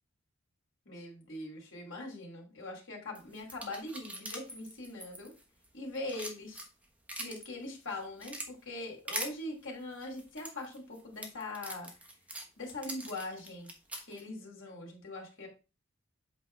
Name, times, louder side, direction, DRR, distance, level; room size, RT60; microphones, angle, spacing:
voice 1, 0.9-5.3 5.7-6.6 7.2-11.9 12.6-13.7 14.1-15.5, left 2 dB, 70° left, 0 dB, 2.7 m, -42 dB
sound 1, 3.1-5.7 5.9-7.5 7.9-8.5 9.1-9.3 10.0-14.2, right 1 dB, 5° right, 1.2 m, -42 dB
8.1 x 4.8 x 3.3 m, 0.32 s
head